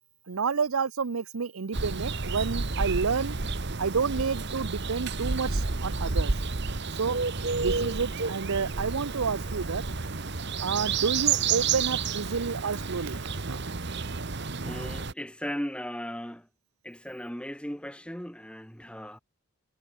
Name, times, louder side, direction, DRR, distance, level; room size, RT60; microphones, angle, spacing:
voice 1, 0.3-3.4 3.8-6.3 7.0-7.2 7.5-9.8 10.6-13.2 13.5-13.6, right 5 dB, 85° right, 0.7 m, -30 dB
sound 1, 1.7-15.1, right 4 dB, 55° right, 1.3 m, -30 dB
voice 2, 14.6-16.5 16.8-19.2, equal, 5° left, 2.2 m, -37 dB
head